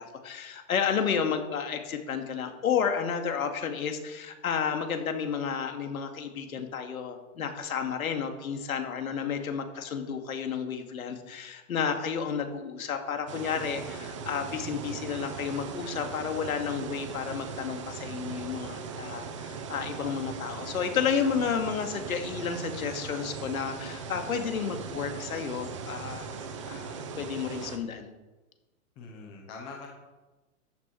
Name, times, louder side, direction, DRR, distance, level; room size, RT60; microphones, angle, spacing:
voice 1, 0.0-28.1, left 7 dB, 70° left, 5 dB, 2.4 m, -31 dB
sound 1, 13.3-27.8, right 5 dB, 20° right, 0.8 m, -39 dB
voice 2, 29.0-29.9, left 4 dB, 10° left, 0 dB, 0.9 m, -43 dB
13.5 x 9.8 x 4.7 m, 1.2 s
hypercardioid pair, 175°, 44 cm